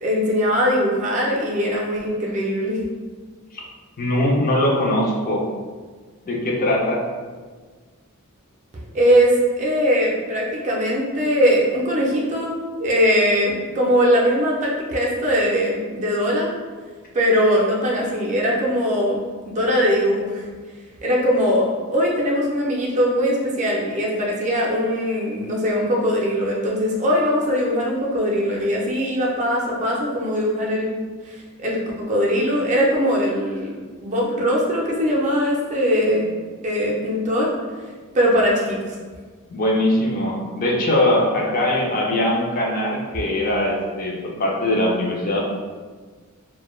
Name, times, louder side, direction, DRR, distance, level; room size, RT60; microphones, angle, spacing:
voice 1, 0.0-2.8 8.7-16.5 17.1-19.2 19.5-20.4 21.0-31.0 31.3-31.8 32.1-33.7 34.0-36.3 36.6-37.5 38.1-39.0, equal, 35° right, -3 dB, 0.4 m, -21 dB
voice 2, 4.0-5.4 6.3-7.0 39.5-45.4, left 1 dB, 40° left, -2 dB, 0.4 m, -21 dB
2.2 x 2.1 x 3.0 m, 1.5 s
head